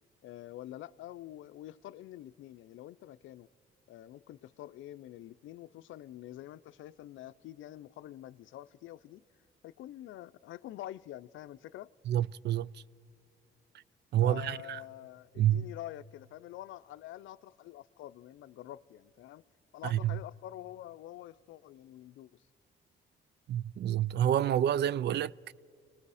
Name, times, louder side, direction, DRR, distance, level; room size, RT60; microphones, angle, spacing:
voice 1, 0.2-3.5 3.9-9.2 9.6-11.9 14.2-19.4 19.7-22.4, left 13 dB, 80° left, 0.5 m, -46 dB
voice 2, 12.1-12.8 14.1-14.8 15.4-15.7 19.9-20.2 23.5-25.3, right 11 dB, 60° right, 0.4 m, -28 dB
28.0 x 19.5 x 4.9 m
cardioid pair, 90°, 20 cm